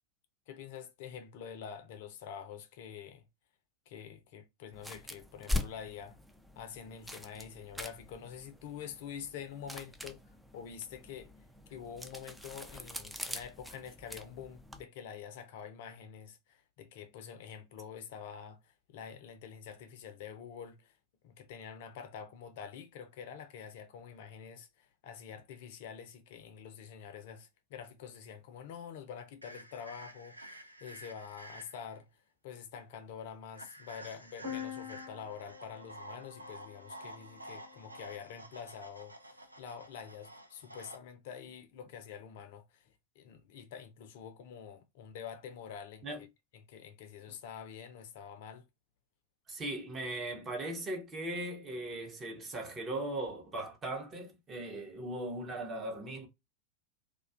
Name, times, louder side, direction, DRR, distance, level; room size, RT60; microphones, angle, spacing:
voice 1, 0.5-3.2 3.9-6.2 6.5-10.2 10.5-11.3 11.7-20.9 21.2-46.3 46.5-48.7, left 7 dB, 50° left, 0.5 m, -47 dB
sound 1, 4.7-14.8, left 2 dB, ahead, 0.3 m, -42 dB
sound 2, 29.4-32.0 33.5-41.0, right 1 dB, 85° right, 0.3 m, -51 dB
sound 3, 34.4-38.2, left 8 dB, 60° right, 1.0 m, -46 dB
voice 2, 49.5-56.3, right 1 dB, 20° right, 0.7 m, -38 dB
2.3 x 2.2 x 2.4 m
figure-of-eight pair, 90°, 0 cm